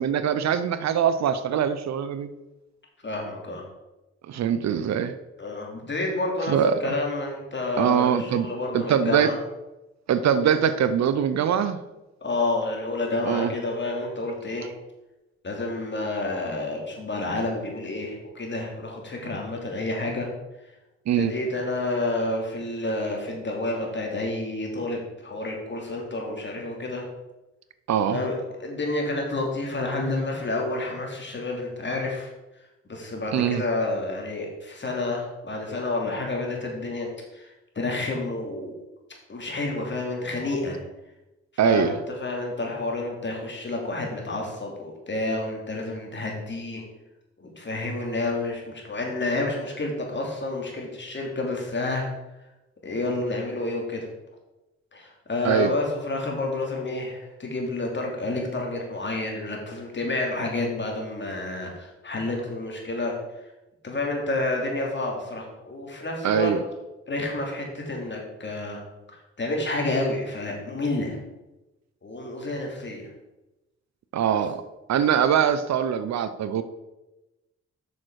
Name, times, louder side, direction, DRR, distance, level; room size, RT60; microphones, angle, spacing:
voice 1, 0.0-2.3 4.3-5.1 6.5-6.9 7.8-9.3 10.1-11.8 13.3-13.5 21.1-21.3 27.9-28.2 33.3-33.6 41.6-41.9 55.4-55.7 66.2-66.6 74.1-74.6 74.9-76.6, right 8 dB, 65° right, 12 dB, 0.7 m, -23 dB
voice 2, 3.0-3.7 5.4-9.4 12.2-14.7 15.4-20.3 20.6-20.7 21.1-27.0 28.1-32.3 32.9-38.7 39.3-40.8 41.6-46.8 47.4-52.1 52.8-54.1 54.9-63.2 63.8-66.5 67.1-68.8 69.4-71.2 72.0-73.1 74.3-74.4, left 2 dB, 40° left, 0 dB, 2.7 m, -29 dB
7.1 x 6.4 x 4.7 m, 1.0 s
supercardioid pair, 55°, 29 cm